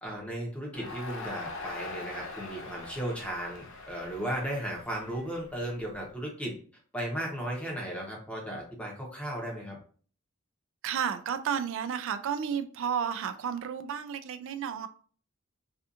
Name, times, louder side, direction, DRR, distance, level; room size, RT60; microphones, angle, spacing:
voice 1, 0.0-6.6 6.9-9.8, right 1 dB, 5° left, 0.8 m, -35 dB
Crowd, 0.7-5.9, left 3 dB, 65° left, 0.6 m, -42 dB
voice 2, 10.8-14.9, right 7 dB, 65° right, 0.3 m, -32 dB
2.6 x 2.4 x 2.4 m
head